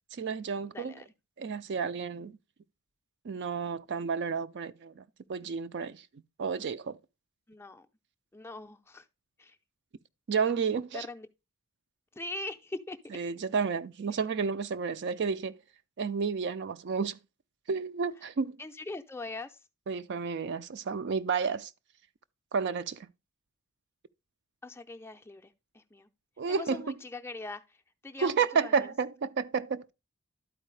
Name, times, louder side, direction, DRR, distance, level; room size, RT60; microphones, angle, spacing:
voice 1, 0.1-0.9 1.4-2.4 3.2-5.0 5.3-6.1 6.4-7.0 10.3-11.1 13.1-15.6 16.0-17.2 17.7-18.6 19.9-21.7 22.5-23.1 26.4-26.8 28.2-29.9, right 5 dB, 50° right, 0.4 m, -31 dB
voice 2, 0.7-1.1 7.5-7.9 8.3-9.1 9.4-9.6 10.9-11.3 12.1-13.0 14.1-14.2 18.2-18.3 18.6-19.7 24.6-26.1 26.5-28.9, left 2 dB, 10° left, 0.5 m, -42 dB
12.0 x 4.6 x 3.2 m
head